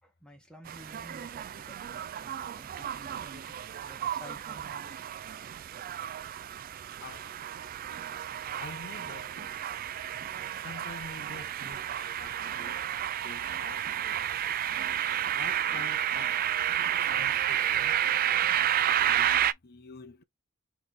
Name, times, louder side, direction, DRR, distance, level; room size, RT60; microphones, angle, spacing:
voice 1, 0.0-5.0, equal, 5° left, 1.5 m, -52 dB
sound 1, 0.7-19.5, right 10 dB, 40° right, 0.3 m, -31 dB
voice 2, 7.0-7.4 8.6-9.6 10.6-11.9 12.2-12.8 13.2-14.2 15.4-16.4 17.0-18.0 19.0-20.2, left 4 dB, 50° left, 0.7 m, -46 dB
4.1 x 3.1 x 3.8 m
head